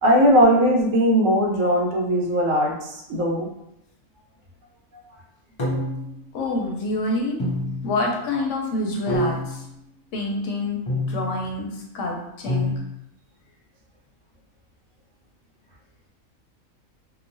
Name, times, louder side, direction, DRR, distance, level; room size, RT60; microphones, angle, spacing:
voice 1, 0.0-3.5, equal, 75° right, 0 dB, 1.0 m, -19 dB
sound 1, 5.6-6.2 7.4-8.0 9.1-9.6 10.9-11.4 12.5-12.8, left 1 dB, 50° left, 0.3 m, -26 dB
voice 2, 6.3-7.4 7.8-9.6 10.1-10.8 11.1-12.7, left 2 dB, 70° left, 0 dB, 0.9 m, -27 dB
2.9 x 2.1 x 2.6 m, 0.81 s
omnidirectional pair, 1.4 m